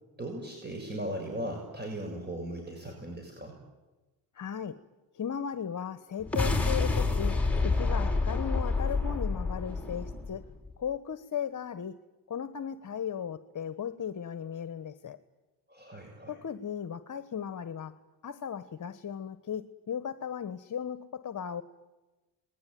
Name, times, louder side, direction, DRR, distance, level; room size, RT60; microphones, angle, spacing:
voice 1, 0.2-3.6 15.7-16.4, right 1 dB, 25° right, 2 dB, 6.5 m, -38 dB
voice 2, 4.3-4.8 5.1-10.5 10.8-12.0 12.3-15.2 16.3-17.9 18.2-21.6, left 8 dB, 45° left, 12 dB, 1.3 m, -36 dB
sound 1, 6.2-10.7, left 3 dB, 5° left, 6.0 m, -28 dB
27.5 x 20.5 x 9.4 m, 1.2 s
cardioid pair, 75°, 43 cm